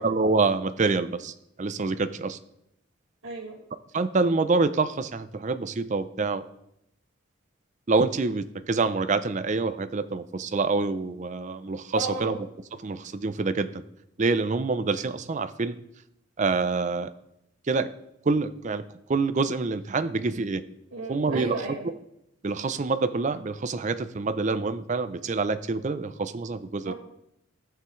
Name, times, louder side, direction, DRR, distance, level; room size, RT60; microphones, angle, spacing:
voice 1, 0.0-2.4 3.9-6.4 7.9-12.4 12.8-13.7 14.2-15.8 16.4-17.1 17.7-17.9 18.3-18.8 19.1-20.6 21.1-21.6 22.4-26.9, right 3 dB, 35° right, 12 dB, 0.4 m, -26 dB
voice 2, 3.2-3.6 11.9-12.3 20.9-21.9 26.9-27.0, right 2 dB, 70° right, -8 dB, 1.9 m, -34 dB
14.5 x 6.8 x 3.2 m, 0.80 s
head